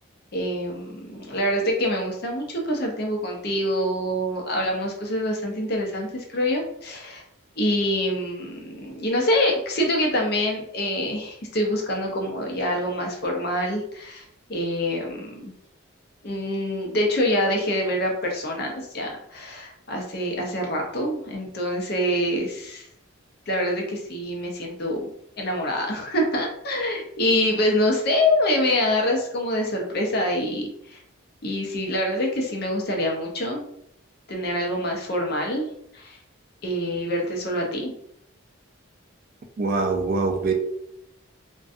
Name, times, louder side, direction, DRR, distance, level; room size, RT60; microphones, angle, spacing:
voice 1, 0.3-7.2 7.6-14.2 14.5-15.5 16.2-22.9 23.5-25.0 25.4-31.0 31.4-33.6 34.3-35.7 35.9-36.2 36.6-37.9, left 1 dB, 50° left, 1 dB, 0.5 m, -25 dB
voice 2, 39.6-40.5, right 3 dB, 40° right, 4 dB, 0.3 m, -23 dB
2.5 x 2.2 x 2.4 m, 0.73 s
head